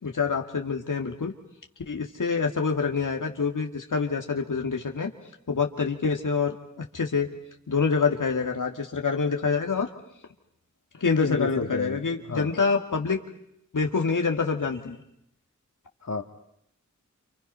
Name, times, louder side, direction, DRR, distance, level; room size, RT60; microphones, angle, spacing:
voice 1, 0.0-1.3 1.9-5.1 5.5-7.3 7.7-9.9 11.0-13.2 13.7-15.0, left 5 dB, 85° left, 3 dB, 2.2 m, -26 dB
voice 2, 11.2-12.0 12.3-12.5 16.0-16.2, left 4 dB, 60° left, 5 dB, 2.0 m, -31 dB
29.5 x 28.5 x 5.6 m, 0.76 s
wide cardioid pair, 65°, 31 cm